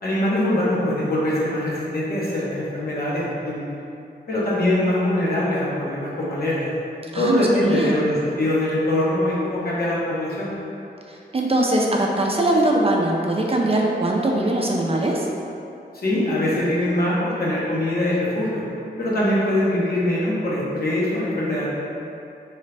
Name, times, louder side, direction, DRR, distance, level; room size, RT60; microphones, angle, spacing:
voice 1, 0.0-3.6 4.3-6.7 7.1-10.5 15.9-18.6 19.0-21.7, left 1 dB, 60° left, -7 dB, 1.0 m, -23 dB
voice 2, 7.1-8.1 11.1-15.3, right 1 dB, 35° right, -1 dB, 0.4 m, -21 dB
3.8 x 3.1 x 3.3 m, 2.7 s
wide cardioid pair, 105°, 18 cm